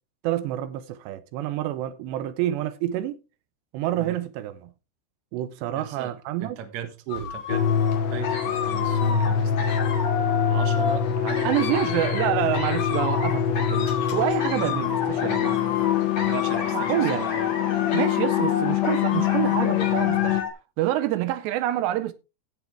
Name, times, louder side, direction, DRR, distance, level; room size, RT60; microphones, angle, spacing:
voice 1, 0.2-3.2 3.7-4.7 5.3-6.6 7.1-7.3 11.4-15.6 16.7-17.2 17.9-20.4 20.8-22.1, right 13 dB, 80° right, 2.9 m, -27 dB
voice 2, 5.8-6.1 6.4-7.7 8.1-9.8 10.5-12.1 16.2-17.5, right 8 dB, 55° right, 2.3 m, -38 dB
sound 1, 7.1-20.5, left 6 dB, 45° left, 3.1 m, -31 dB
sound 2, 7.5-20.4, left 9 dB, 85° left, 3.6 m, -25 dB
16.5 x 6.2 x 3.4 m
omnidirectional pair, 5.0 m